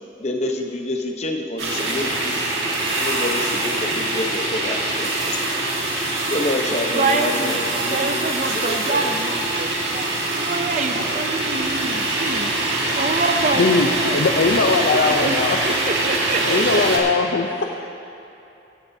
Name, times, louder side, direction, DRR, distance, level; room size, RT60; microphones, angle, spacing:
voice 1, 0.2-5.4 6.3-9.1, left 1 dB, 35° left, 2 dB, 0.8 m, -28 dB
sound 1, 1.6-17.0, right 2 dB, 80° right, 1.7 m, -23 dB
voice 2, 6.9-9.7 9.9-14.5 14.9-15.3 15.6-17.1, right 3 dB, 40° right, 6 dB, 0.4 m, -26 dB
voice 3, 13.5-15.6 16.4-17.6, left 4 dB, 80° left, 3 dB, 0.5 m, -20 dB
16.0 x 11.0 x 2.7 m, 2.8 s
head